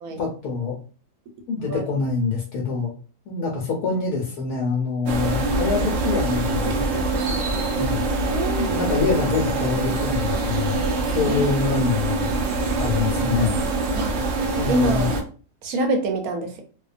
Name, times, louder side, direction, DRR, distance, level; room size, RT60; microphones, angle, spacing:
voice 1, 0.2-0.8 1.5-2.9 3.3-7.0 7.8-8.1 8.6-10.8 11.1-12.3 12.8-13.6 14.6-15.1, left 5 dB, 75° left, -1 dB, 1.1 m, -25 dB
sound 1, 5.1-15.2, right 2 dB, 85° right, 0.5 m, -24 dB
voice 2, 8.3-8.8 11.2-11.4 13.9-14.1 14.7-15.2 15.6-16.6, right 2 dB, 70° right, 4 dB, 0.9 m, -25 dB
2.7 x 2.2 x 2.4 m, 0.38 s
omnidirectional pair, 1.7 m